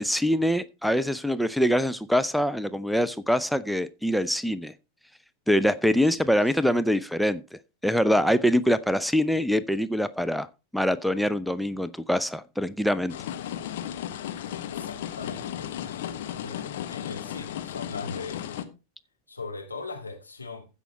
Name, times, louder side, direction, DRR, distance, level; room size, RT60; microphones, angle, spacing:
voice 1, 0.0-4.7 5.5-10.5 10.7-13.1, equal, ahead, 0.5 m, -24 dB
sound 1, 13.1-18.6, left 10 dB, 55° left, 1.2 m, -35 dB
voice 2, 14.6-18.4 19.3-20.7, left 4 dB, 80° left, 2.8 m, -40 dB
15.0 x 5.6 x 4.3 m
figure-of-eight pair, 90°, 0 cm